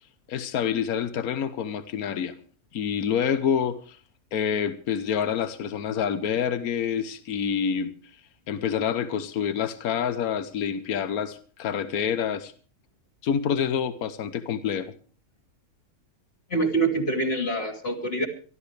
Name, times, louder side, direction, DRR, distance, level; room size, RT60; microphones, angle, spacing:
voice 1, 0.3-2.3 2.7-4.0 4.3-7.9 8.5-12.5 13.2-14.9, left 8 dB, 80° left, 1.4 m, -27 dB
voice 2, 16.5-18.3, right 2 dB, 40° left, 3.1 m, -25 dB
25.0 x 12.5 x 3.4 m
omnidirectional pair, 1.5 m